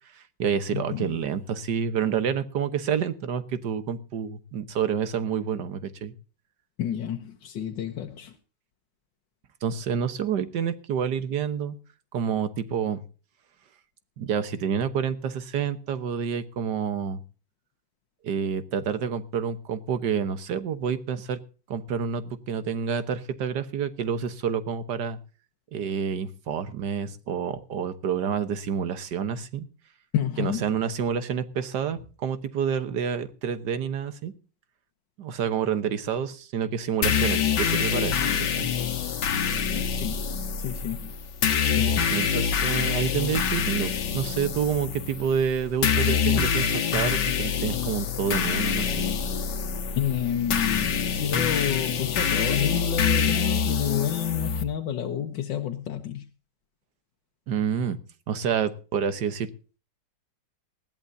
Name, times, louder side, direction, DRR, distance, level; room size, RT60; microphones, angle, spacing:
voice 1, 0.1-6.1 9.6-11.8 12.1-13.0 14.2-17.2 18.2-21.4 21.7-25.2 25.7-29.7 30.4-34.3 35.2-38.7 42.1-49.1 57.5-58.0 58.3-59.5, right 7 dB, 70° right, 1.7 m, -28 dB
voice 2, 0.7-1.2 6.8-8.4 30.1-30.8 39.7-40.3 40.6-41.1 41.8-42.3 50.0-56.3, left 10 dB, 90° left, 1.8 m, -30 dB
sound 1, 37.0-54.6, left 7 dB, 70° left, 1.9 m, -26 dB
20.0 x 14.5 x 2.7 m
omnidirectional pair, 1.9 m